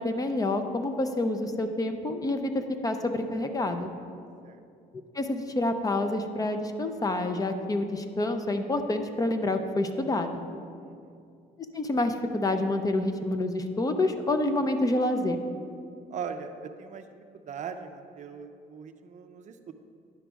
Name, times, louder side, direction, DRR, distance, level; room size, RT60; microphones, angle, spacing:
voice 1, 0.0-2.5 2.8-3.9 5.1-10.4 11.7-15.4, left 2 dB, 20° left, 7 dB, 0.5 m, -28 dB
voice 2, 10.8-11.1 16.1-17.0 17.5-19.7, right 6 dB, 45° right, 7 dB, 0.5 m, -40 dB
10.0 x 3.4 x 6.1 m, 2.4 s
cardioid pair, 110°, 17 cm